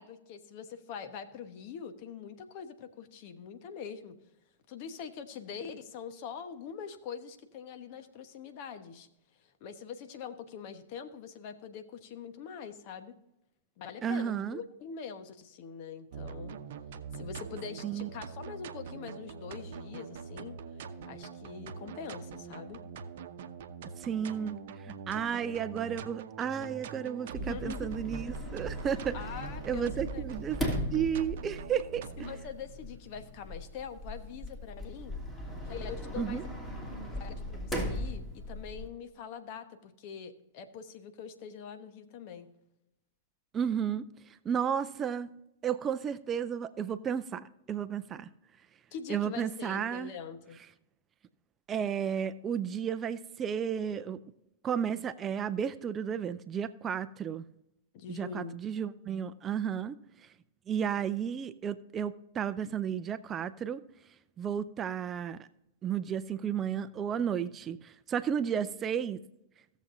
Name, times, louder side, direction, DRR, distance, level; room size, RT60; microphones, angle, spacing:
voice 1, 0.0-4.2 4.7-9.1 9.6-13.2 13.8-16.6 17.1-20.6 21.0-22.8 27.4-27.9 29.1-30.2 32.2-35.2 35.6-36.5 37.1-42.5 48.9-50.6 53.9-54.0 57.9-58.6, left 7 dB, 50° left, 1.1 m, -43 dB
voice 2, 14.0-14.6 17.8-18.1 24.0-29.2 29.6-30.6 30.9-32.0 36.2-36.4 43.5-45.3 45.6-48.3 49.1-50.1 51.7-54.2 54.6-57.4 58.1-60.0 60.7-63.8 64.4-65.5 65.8-69.2, right 8 dB, 25° right, 0.4 m, -33 dB
sound 1, 16.1-32.5, right 6 dB, 55° right, 0.8 m, -43 dB
Sliding door, 27.4-38.9, left 1 dB, 10° left, 2.7 m, -39 dB
17.0 x 7.3 x 2.7 m
figure-of-eight pair, 100°, 0 cm